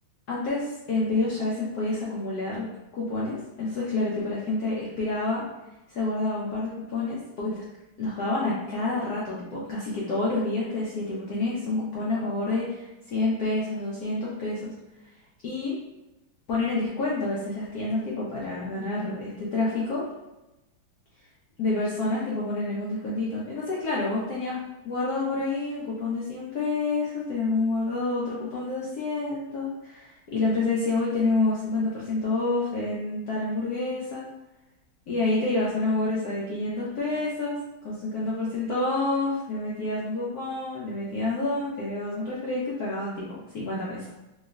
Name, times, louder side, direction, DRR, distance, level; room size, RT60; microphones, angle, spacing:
voice 1, 0.3-2.7 2.9-5.4 5.9-7.6 8.0-14.7 15.4-15.8 16.5-20.0 21.6-24.6 24.8-34.3 35.1-37.6 37.8-44.1, left 2 dB, 70° left, -7 dB, 0.9 m, -28 dB
3.1 x 3.0 x 2.3 m, 0.98 s
omnidirectional pair, 2.3 m